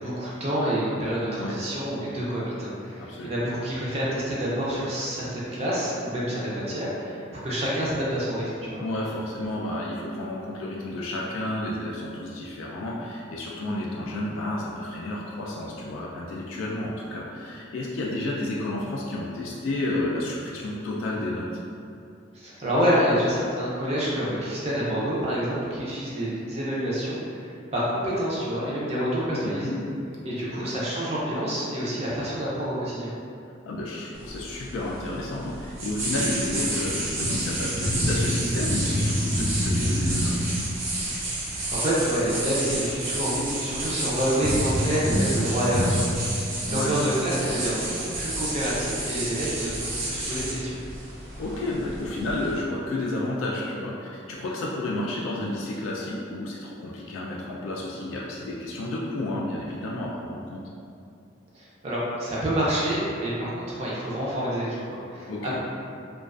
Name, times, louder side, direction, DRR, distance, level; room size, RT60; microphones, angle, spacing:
voice 1, 0.0-8.8 22.3-29.8 30.2-33.1 41.5-50.8 61.5-65.6, equal, 30° right, -7 dB, 0.4 m, -28 dB
voice 2, 3.0-3.4 8.8-21.5 29.4-29.8 30.2-30.6 33.7-40.5 46.7-46.9 51.4-60.6 65.2-65.6, left 1 dB, 85° left, -3 dB, 0.3 m, -31 dB
sound 1, 34.2-52.6, right 1 dB, 80° right, 0.6 m, -28 dB
2.4 x 2.2 x 2.3 m, 2.5 s
head